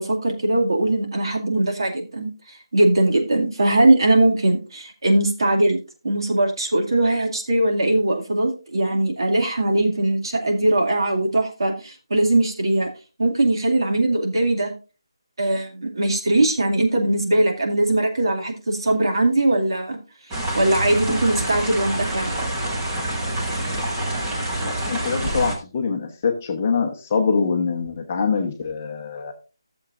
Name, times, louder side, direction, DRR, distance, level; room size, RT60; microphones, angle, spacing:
voice 1, 0.0-5.8 6.0-12.9 13.2-14.7 15.4-20.0 20.5-22.3, right 1 dB, 65° right, 1 dB, 2.3 m, -20 dB
sound 1, 20.3-25.6, right 1 dB, 15° right, 1.1 m, -26 dB
voice 2, 24.6-29.3, left 5 dB, 20° left, 3 dB, 1.0 m, -24 dB
14.5 x 7.1 x 2.5 m, 0.32 s
figure-of-eight pair, 175°, 3 cm